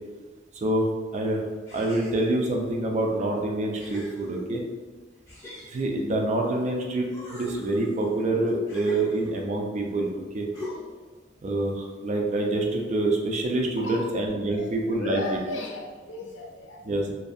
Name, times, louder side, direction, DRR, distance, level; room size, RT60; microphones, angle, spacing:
voice 1, 0.5-1.4 1.7-4.6 5.7-10.5 11.4-15.2 16.8-17.1, right 2 dB, 40° right, 1 dB, 0.4 m, -26 dB
sound 1, 1.7-2.5 3.2-3.3 3.7-4.8 5.3-6.7 7.0-9.6 10.5-11.1, left 1 dB, 15° left, 0.7 m, -42 dB
voice 2, 13.8-14.1 14.4-16.9, left 2 dB, 85° left, 0 dB, 0.5 m, -36 dB
2.6 x 2.3 x 2.4 m, 1.3 s
head